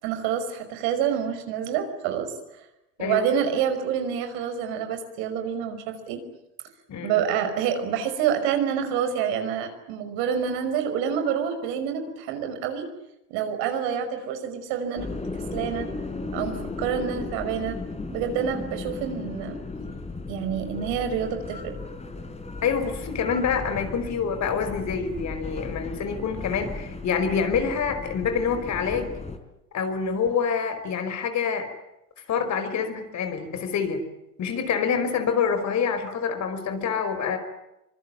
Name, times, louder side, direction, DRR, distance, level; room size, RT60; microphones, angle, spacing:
voice 1, 0.0-2.3 3.0-6.2 7.0-12.9 13.3-15.1 15.5-15.9 16.3-17.8 18.1-19.6 20.3-21.7, right 8 dB, 55° right, 8 dB, 5.6 m, -27 dB
voice 2, 3.0-3.3 6.9-7.2 22.6-29.1 29.7-31.7 32.3-34.1 34.4-37.4, left 6 dB, 35° left, 8 dB, 5.1 m, -26 dB
sound 1, 15.0-29.4, left 3 dB, 15° left, 4.0 m, -35 dB
25.5 x 24.0 x 9.0 m, 0.88 s
hypercardioid pair, 90°, 46 cm